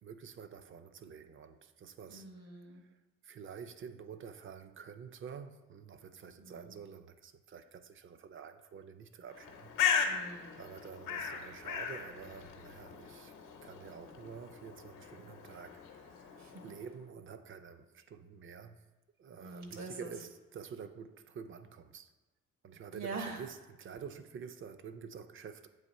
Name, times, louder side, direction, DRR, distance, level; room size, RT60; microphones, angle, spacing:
voice 1, 0.0-2.3 2.7-2.9 3.2-9.7 10.6-13.3 13.6-18.8 19.2-22.1 22.6-25.7, right 6 dB, 45° right, 0.5 m, -49 dB
voice 2, 2.1-2.8 6.4-6.7 10.0-10.6 13.9-14.3 16.4-16.7 19.4-20.1 22.9-23.5, right 3 dB, 65° right, 1.1 m, -45 dB
Bird, 9.3-16.9, left 7 dB, 85° left, 0.7 m, -37 dB
7.9 x 2.9 x 4.1 m
cardioid pair, 90°, 30 cm